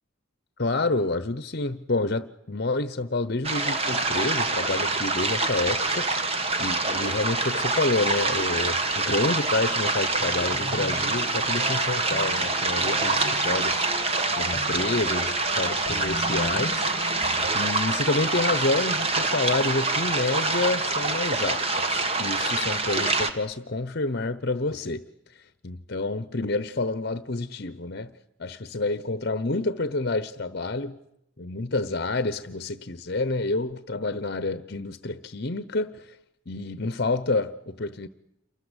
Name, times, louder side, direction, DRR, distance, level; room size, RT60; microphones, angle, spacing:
voice 1, 0.6-13.9 14.4-25.1 25.3-28.1 28.4-31.0 31.4-36.2 36.5-38.1, left 2 dB, 50° left, 1.0 m, -28 dB
sound 1, 3.4-23.3, right 3 dB, 30° right, 1.9 m, -26 dB
sound 2, 10.2-17.5, left 2 dB, 25° left, 1.5 m, -38 dB
29.0 x 24.5 x 8.2 m
head